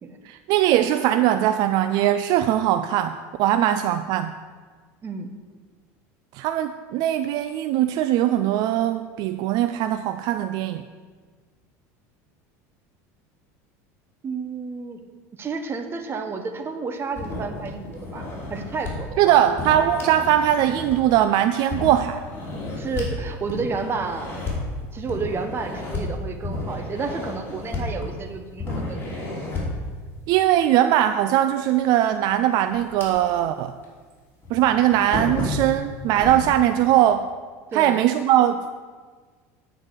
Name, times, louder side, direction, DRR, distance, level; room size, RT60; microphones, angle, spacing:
voice 1, 0.2-4.3 6.3-10.8 19.2-22.2 30.3-33.7 34.5-37.3 37.7-38.7, right 12 dB, 60° right, 10 dB, 0.4 m, -20 dB
voice 2, 14.2-15.0 15.4-19.4 22.8-24.3 24.9-29.0 37.7-38.0, right 4 dB, 30° right, 6 dB, 1.1 m, -31 dB
sound 1, 17.1-18.9 19.6-21.2 21.7-23.1 23.5-24.6 25.1-26.0 26.4-28.3 28.6-29.8 31.7-31.8 32.3-33.5 33.8-33.9 34.4-36.5, left 2 dB, 30° left, 3.3 m, -32 dB
9.0 x 4.8 x 7.5 m, 1.5 s
supercardioid pair, 105°, 8 cm